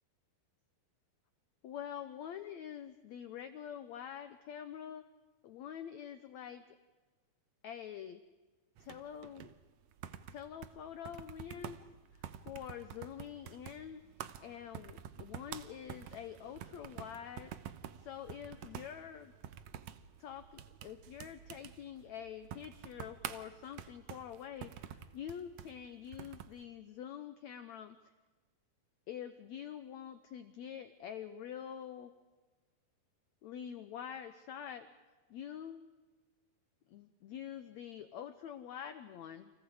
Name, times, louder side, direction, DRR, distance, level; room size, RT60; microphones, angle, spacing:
voice 1, 1.6-5.0 5.4-6.6 7.6-8.2 8.8-9.5 10.3-11.8 12.1-14.0 14.4-17.5 18.0-19.3 20.2-28.0 29.1-32.1 33.4-34.9 35.3-35.8 36.9-39.5, left 9 dB, 80° left, 10 dB, 1.6 m, -46 dB
sound 1, 8.8-26.6, right 10 dB, 75° right, 1.6 m, -49 dB
29.5 x 28.0 x 4.9 m, 1.3 s
omnidirectional pair, 4.3 m